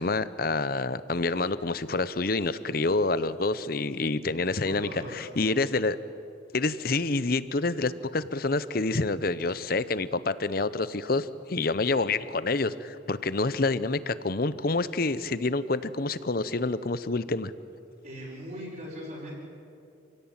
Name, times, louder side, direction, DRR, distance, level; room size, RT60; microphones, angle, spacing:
voice 1, 0.0-6.0 6.5-17.5, left 3 dB, 50° left, 15 dB, 0.8 m, -27 dB
voice 2, 4.5-5.6 18.0-19.4, equal, 45° right, -6 dB, 5.4 m, -40 dB
28.0 x 17.0 x 8.9 m, 2.6 s
head